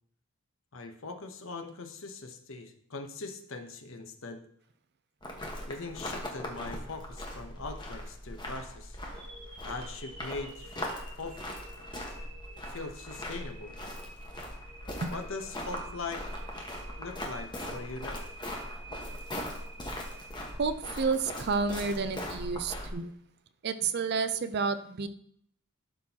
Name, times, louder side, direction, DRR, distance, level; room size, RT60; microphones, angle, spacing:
voice 1, 0.7-4.4 5.7-9.0 9.6-10.8 11.2-11.4 12.7-13.7 15.1-16.3 16.9-18.3, left 3 dB, 60° left, 7 dB, 0.9 m, -41 dB
sound 1, 5.2-22.9, left 1 dB, 20° left, 1.3 m, -40 dB
sound 2, 9.1-21.2, right 2 dB, 30° right, 3.1 m, -51 dB
voice 2, 20.6-23.1 23.6-25.1, right 4 dB, 50° right, 12 dB, 0.5 m, -30 dB
12.0 x 6.0 x 2.9 m, 0.67 s
head